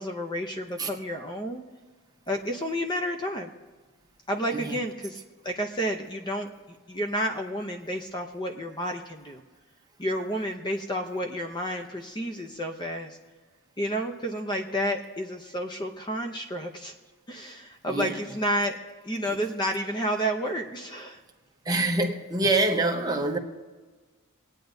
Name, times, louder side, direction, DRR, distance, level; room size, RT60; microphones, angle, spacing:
voice 1, 0.0-1.6 2.3-3.5 4.3-5.2 5.4-6.5 6.9-9.4 10.0-13.2 13.8-16.9 17.3-18.8 19.0-21.2, equal, 20° left, 4 dB, 0.7 m, -30 dB
voice 2, 17.9-18.3 19.3-19.4 21.6-23.4, right 2 dB, 20° right, 2 dB, 0.9 m, -26 dB
25.0 x 9.1 x 2.7 m, 1.3 s
head